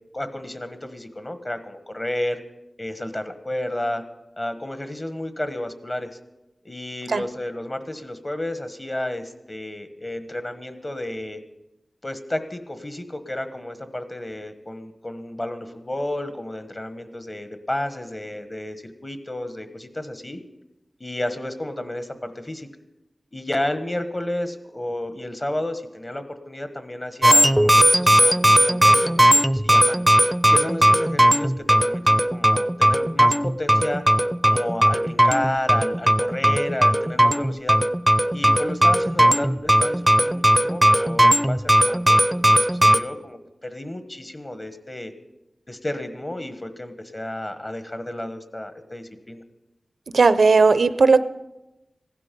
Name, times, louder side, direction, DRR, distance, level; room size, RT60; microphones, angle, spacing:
voice 1, 0.1-2.4 2.8-4.0 4.4-6.2 6.6-11.4 12.0-20.4 21.0-22.7 23.3-30.0 30.5-34.0 34.4-37.8 38.3-45.1 45.7-49.4, left 1 dB, 35° left, 9 dB, 1.3 m, -31 dB
sound 1, 27.2-43.0, right 1 dB, 10° right, 0.5 m, -18 dB
voice 2, 50.1-51.2, right 4 dB, 90° right, 14 dB, 0.5 m, -16 dB
15.5 x 12.0 x 5.3 m, 0.97 s
wide cardioid pair, 65°, 0 cm